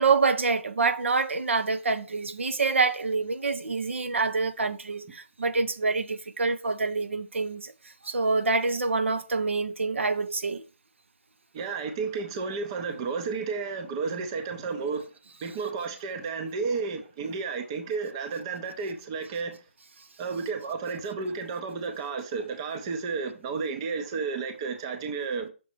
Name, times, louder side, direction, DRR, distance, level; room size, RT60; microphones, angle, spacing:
voice 1, 0.0-7.7 8.0-10.6, right 4 dB, 80° right, 0.9 m, -26 dB
voice 2, 11.5-15.1 15.4-19.6 20.2-25.5, right 4 dB, 25° right, 0.6 m, -32 dB
6.2 x 4.1 x 4.3 m
hypercardioid pair, 160°, 7 cm